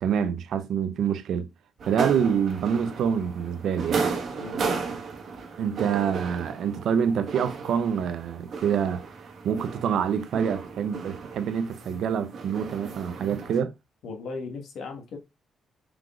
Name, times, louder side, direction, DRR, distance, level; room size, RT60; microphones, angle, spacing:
voice 1, 0.0-1.5 1.9-4.1 5.6-9.0 9.4-13.7, right 7 dB, 75° right, 0.5 m, -26 dB
sound 1, 1.8-13.6, right 5 dB, 60° right, 1.2 m, -34 dB
voice 2, 4.4-5.0 14.0-15.2, left 4 dB, 75° left, 1.4 m, -38 dB
4.6 x 3.8 x 2.3 m
cardioid pair, 90°, 0 cm